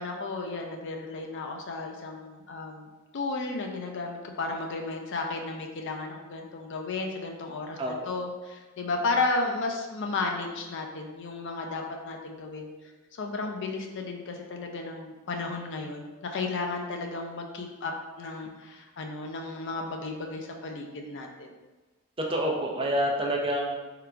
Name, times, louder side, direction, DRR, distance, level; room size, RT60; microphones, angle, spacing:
voice 1, 0.0-12.7 13.1-21.5, left 3 dB, 55° left, 3 dB, 0.4 m, -33 dB
voice 2, 7.8-8.1 22.3-23.8, equal, 25° right, 0 dB, 0.5 m, -27 dB
3.7 x 2.3 x 4.4 m, 1.2 s
head